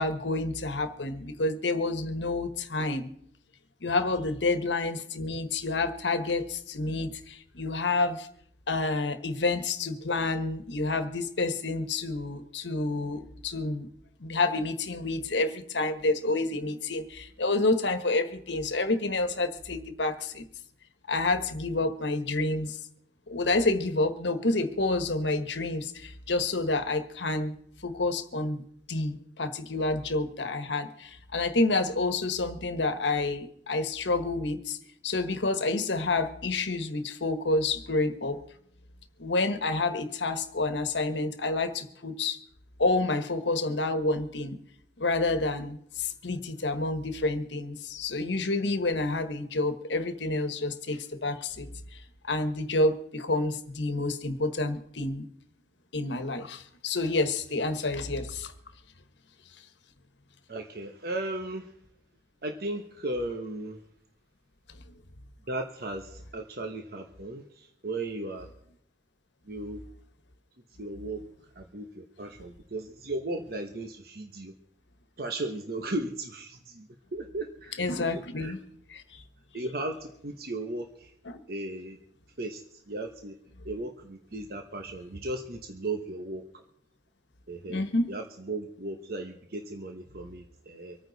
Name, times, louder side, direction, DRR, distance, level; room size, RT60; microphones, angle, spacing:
voice 1, 0.0-3.1 3.8-8.3 8.7-13.9 14.2-20.4 21.1-22.8 23.3-27.5 27.8-28.6 28.9-34.8 35.0-38.4 39.2-42.4 42.8-44.6 45.0-51.7 52.2-55.3 55.9-58.5 77.8-78.6 78.9-79.2 81.3-81.4 87.7-88.1, left 2 dB, 85° left, 9 dB, 1.3 m, -29 dB
voice 2, 60.5-61.7 62.4-63.8 65.5-68.5 69.5-69.8 70.8-71.2 71.5-74.5 75.2-78.5 79.5-81.1 81.5-82.0 82.4-82.6 82.9-83.4 83.6-86.6 87.5-91.0, right 2 dB, 55° right, 4 dB, 1.1 m, -36 dB
25.0 x 9.3 x 4.1 m, 0.68 s
head